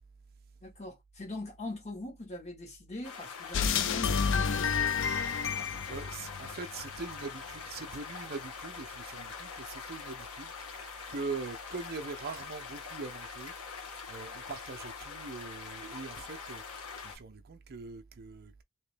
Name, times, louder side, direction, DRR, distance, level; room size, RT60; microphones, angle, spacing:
voice 1, 0.6-4.8, left 2 dB, 30° left, 1.5 m, -42 dB
sound 1, 3.0-17.2, left 5 dB, 85° left, 1.3 m, -44 dB
sound 2, 3.5-7.0, left 6 dB, 60° left, 0.5 m, -30 dB
voice 2, 5.9-18.6, right 4 dB, 45° right, 0.6 m, -42 dB
3.1 x 2.9 x 3.3 m
head